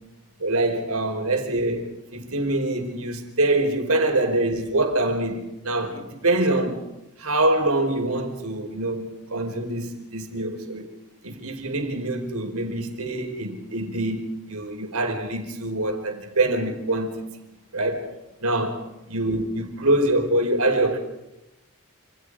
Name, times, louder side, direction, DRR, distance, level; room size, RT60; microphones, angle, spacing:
voice 1, 0.4-6.8 7.2-10.9 11.2-17.2 17.7-18.1 18.4-21.0, right 2 dB, 80° right, 5.0 m, -25 dB
28.5 x 28.0 x 5.0 m
head